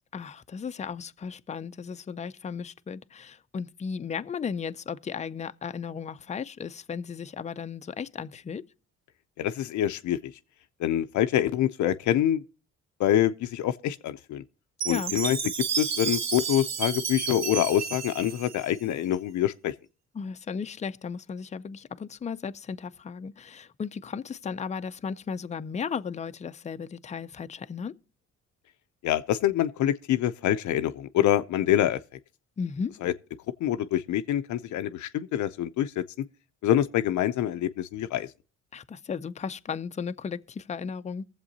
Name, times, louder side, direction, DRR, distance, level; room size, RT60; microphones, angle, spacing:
voice 1, 0.1-8.7 14.9-15.1 20.1-27.9 32.6-32.9 38.7-41.3, left 6 dB, 25° left, 0.5 m, -35 dB
voice 2, 9.4-10.3 10.8-12.4 13.0-14.4 14.8-15.4 15.8-19.7 29.0-32.0 33.0-33.1 33.6-36.3 36.6-38.3, left 12 dB, 75° left, 0.5 m, -26 dB
Chime, 14.8-19.1, right 7 dB, 60° right, 1.0 m, -31 dB
22.0 x 7.5 x 2.7 m
cardioid pair, 90°, 30 cm